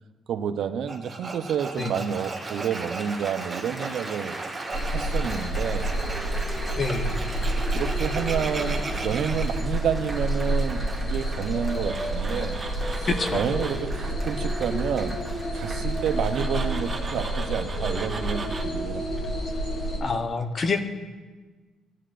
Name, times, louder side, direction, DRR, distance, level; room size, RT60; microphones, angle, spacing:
voice 1, 0.3-4.4 4.9-5.9 7.7-12.6 12.9-15.2 15.5-19.1, right 8 dB, 70° right, 9 dB, 0.6 m, -29 dB
Applause, 0.8-0.9 1.6-17.5 18.2-18.6, right 2 dB, 15° right, 1.4 m, -40 dB
Tools, 0.9-9.5 11.6-13.9 16.1-18.6, right 3 dB, 30° right, 1.0 m, -37 dB
sound 1, 4.7-20.0, right 1 dB, 65° left, 2.8 m, -29 dB
voice 2, 6.8-7.3 13.1-13.5 20.0-20.8, left 4 dB, 40° left, 7 dB, 0.9 m, -27 dB
16.5 x 10.0 x 2.5 m, 1.3 s
cardioid pair, 90°, 0 cm